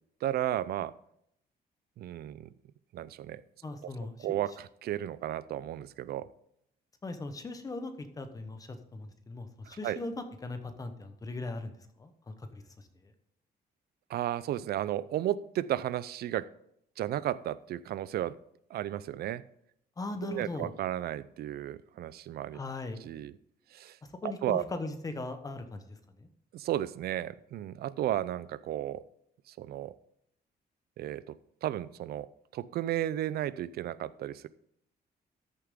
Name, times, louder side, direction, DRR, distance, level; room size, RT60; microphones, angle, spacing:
voice 1, 0.2-0.9 2.0-2.5 2.9-3.4 3.8-3.9 4.2-6.3 9.7-10.0 14.1-16.5 17.0-18.4 18.7-19.4 20.2-22.6 23.0-23.3 23.7-24.0 24.2-24.6 26.5-29.0 29.5-29.9 31.0-34.5, right 12 dB, 65° right, 17 dB, 0.5 m, -34 dB
voice 2, 3.6-4.3 7.0-13.1 20.0-20.7 22.5-23.0 24.2-26.3, left 2 dB, 20° left, 8 dB, 1.0 m, -39 dB
13.5 x 6.9 x 3.7 m, 0.73 s
cardioid pair, 160°, 17 cm